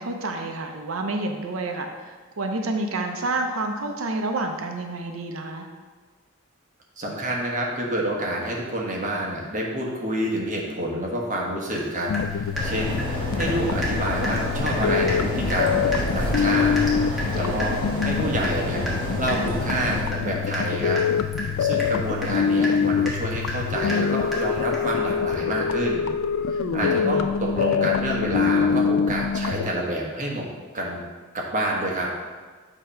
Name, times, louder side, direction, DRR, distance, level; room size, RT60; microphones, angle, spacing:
voice 1, 0.0-5.7 17.3-17.6 26.6-27.0, right 2 dB, 90° right, 4 dB, 0.7 m, -29 dB
voice 2, 7.0-16.7 17.1-17.8 18.0-18.9 19.1-21.0 21.4-26.1 26.5-30.5 30.7-31.0 31.3-32.1, right 1 dB, 40° right, -2 dB, 1.2 m, -28 dB
Water tap faucet / Drip, 11.7-11.9 12.1-13.6 13.8-14.0 14.2-14.4 14.7-14.8 15.1-15.2 15.5-25.0, equal, ahead, 1.3 m, -33 dB
sound 1, 12.1-29.7, left 6 dB, 75° left, 0.3 m, -25 dB
sound 2, 12.5-20.0, equal, 25° left, 2.0 m, -29 dB
7.5 x 3.0 x 5.6 m, 1.4 s
head